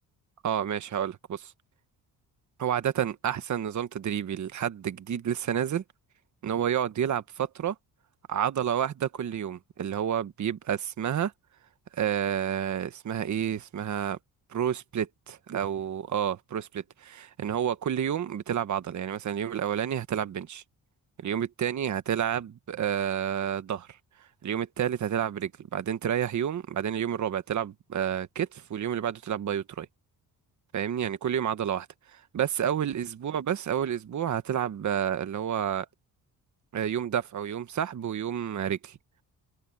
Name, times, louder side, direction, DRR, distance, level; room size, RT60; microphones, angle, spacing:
voice 1, 0.4-1.5 2.6-5.8 6.4-7.7 8.3-11.3 11.9-14.2 14.5-20.6 21.2-24.0 24.4-29.9 30.7-31.9 32.1-35.9 36.7-39.0, right 9 dB, 50° right, 1.2 m, -30 dB
cardioid pair, 100°, 38 cm